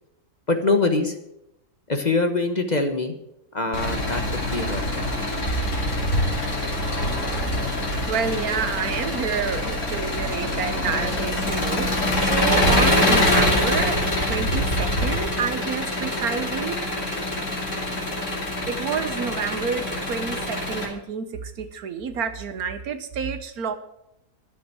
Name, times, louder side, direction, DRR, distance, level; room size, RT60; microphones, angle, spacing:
voice 1, 0.5-1.2 1.9-3.1 3.5-5.0, left 3 dB, 30° left, 6 dB, 1.1 m, -24 dB
Engine, 3.7-20.9, left 1 dB, 55° left, 2.9 m, -24 dB
voice 2, 8.1-14.0 14.3-16.8 18.6-23.7, right 6 dB, 80° right, 10 dB, 1.5 m, -29 dB
12.0 x 7.2 x 7.6 m, 0.82 s
omnidirectional pair, 1.6 m